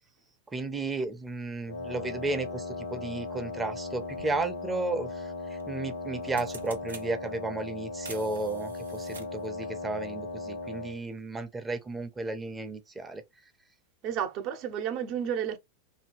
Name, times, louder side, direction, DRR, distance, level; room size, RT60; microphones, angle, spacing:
voice 1, 0.5-5.3 5.7-13.2, right 3 dB, 15° right, 0.7 m, -33 dB
Wind instrument woodwind instrument, 1.7-11.0, left 3 dB, 80° left, 1.0 m, -37 dB
sound 1, 4.2-4.3 5.6-5.8 6.1-7.1 8.0-9.5, right 4 dB, 85° right, 0.7 m, -46 dB
voice 2, 14.0-15.6, right 9 dB, 50° right, 0.8 m, -31 dB
2.7 x 2.2 x 3.1 m
hypercardioid pair, 95°, 0 cm